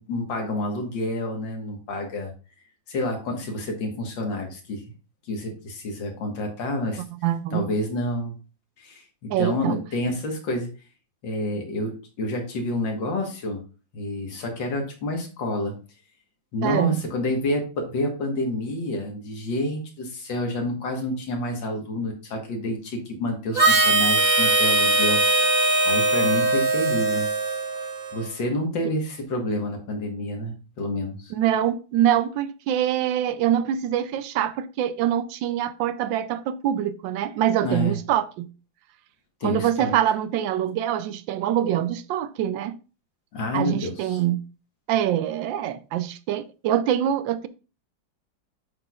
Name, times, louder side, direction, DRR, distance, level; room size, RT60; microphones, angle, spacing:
voice 1, 0.0-2.3 2.9-4.8 5.3-7.0 7.5-8.3 8.8-10.7 11.2-11.9 12.2-13.6 13.9-15.7 16.5-25.5 25.9-27.3 28.1-31.3 37.6-38.0 39.4-39.9 43.3-44.2, left 1 dB, 80° left, 2.2 m, -28 dB
voice 2, 7.2-7.7 9.3-9.8 16.6-17.0 31.3-38.5 39.4-42.7 43.5-44.4 44.9-47.5, right 11 dB, 85° right, 1.3 m, -24 dB
Harmonica, 23.5-28.3, right 2 dB, 45° right, 0.6 m, -21 dB
7.6 x 6.0 x 2.4 m
omnidirectional pair, 2.0 m